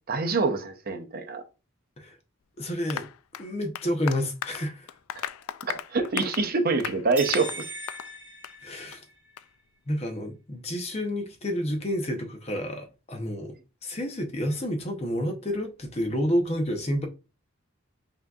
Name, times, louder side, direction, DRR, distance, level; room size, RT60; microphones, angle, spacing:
voice 1, 0.1-1.4 5.1-5.3 5.7-7.5, right 3 dB, 45° right, 0.7 m, -26 dB
voice 2, 2.6-3.1 3.4-4.9 8.6-9.0 9.9-13.5 13.8-17.1, equal, 30° left, 0.7 m, -29 dB
Applause, 2.9-8.1 8.4-8.6 8.9-9.0 9.4-9.5, left 10 dB, 80° left, 0.3 m, -37 dB
sound 1, 7.2-9.3, right 1 dB, 10° right, 1.3 m, -39 dB
5.9 x 2.8 x 2.3 m
head